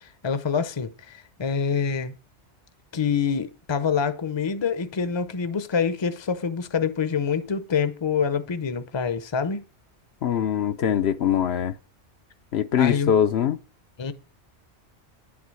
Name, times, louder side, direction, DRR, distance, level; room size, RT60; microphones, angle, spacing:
voice 1, 0.0-2.1 2.9-9.6 12.8-13.1 14.0-14.1, left 6 dB, 30° left, 0.7 m, -26 dB
voice 2, 10.2-11.8 12.5-13.6, left 9 dB, 70° left, 0.9 m, -22 dB
10.5 x 6.0 x 7.6 m
omnidirectional pair, 1.2 m